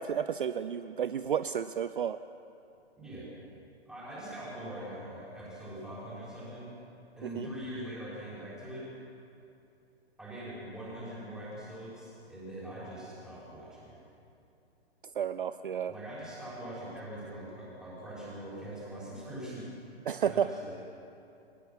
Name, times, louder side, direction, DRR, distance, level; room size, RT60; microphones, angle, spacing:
voice 1, 0.0-2.2 7.3-7.5 15.2-15.9 20.1-20.5, right 8 dB, 55° right, 13 dB, 0.6 m, -31 dB
voice 2, 3.0-3.3 3.8-6.7 7.2-8.9 10.2-14.0 15.9-19.7 20.2-20.8, right 1 dB, ahead, -8 dB, 6.2 m, -42 dB
22.5 x 19.5 x 6.1 m, 2.7 s
figure-of-eight pair, 120°, 32 cm